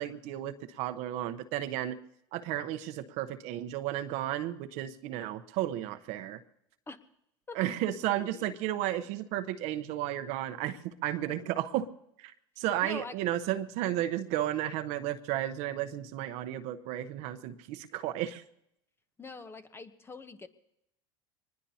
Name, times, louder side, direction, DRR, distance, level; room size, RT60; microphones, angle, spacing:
voice 1, 0.0-2.0 2.3-6.4 7.5-11.9 12.2-12.3 12.6-18.4, right 13 dB, 65° right, 9 dB, 0.9 m, -33 dB
voice 2, 8.2-8.5 12.8-13.1 19.2-20.5, left 3 dB, 20° left, 11 dB, 1.0 m, -44 dB
23.5 x 20.0 x 2.8 m, 0.80 s
supercardioid pair, 100°, 13 cm